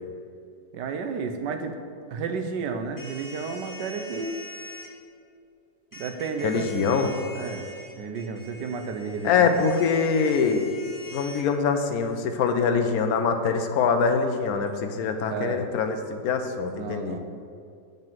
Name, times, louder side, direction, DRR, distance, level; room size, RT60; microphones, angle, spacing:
voice 1, 0.7-1.8 2.1-4.4 5.9-7.7 8.0-9.5 15.2-15.7 16.7-17.2, right 5 dB, 80° right, 6 dB, 1.4 m, -32 dB
sound 1, 3.0-4.9 5.9-11.4, left 1 dB, 15° left, 0.7 m, -43 dB
voice 2, 6.4-7.1 9.2-10.7 11.1-17.2, left 5 dB, 65° left, 6 dB, 1.2 m, -24 dB
8.1 x 5.3 x 7.4 m, 2.5 s
omnidirectional pair, 1.8 m